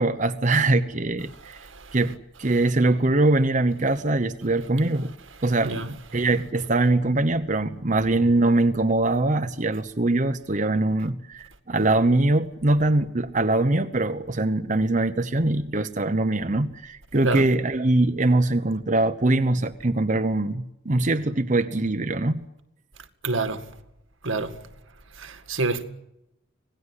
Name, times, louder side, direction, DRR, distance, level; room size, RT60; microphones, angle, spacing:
voice 1, 0.0-1.6 1.9-5.1 5.4-22.4, right 2 dB, 40° right, 0.9 m, -22 dB
voice 2, 23.2-23.6 24.2-24.5 25.2-25.8, right 3 dB, 80° right, 2.1 m, -26 dB
26.0 x 18.5 x 9.8 m
head